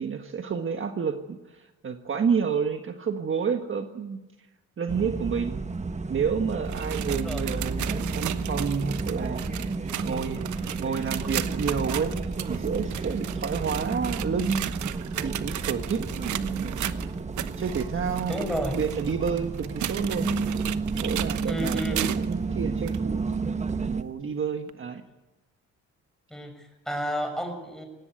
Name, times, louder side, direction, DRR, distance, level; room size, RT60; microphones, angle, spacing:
voice 1, 0.0-4.2 4.8-5.6 6.1-17.1 17.6-20.3 21.0-23.3 23.8-25.0, right 6 dB, 40° right, 6 dB, 1.5 m, -30 dB
sound 1, 4.9-24.0, right 4 dB, 25° right, 1.2 m, -31 dB
sound 2, 6.5-22.4 22.9-23.0 23.7-23.8 24.7-24.8, right 11 dB, 70° right, 1.1 m, -35 dB
voice 2, 7.1-7.5 18.3-18.8 21.5-22.1 26.3-27.9, equal, ahead, 5 dB, 6.6 m, -31 dB
19.0 x 17.0 x 9.4 m, 1.0 s
cardioid pair, 90°, 30 cm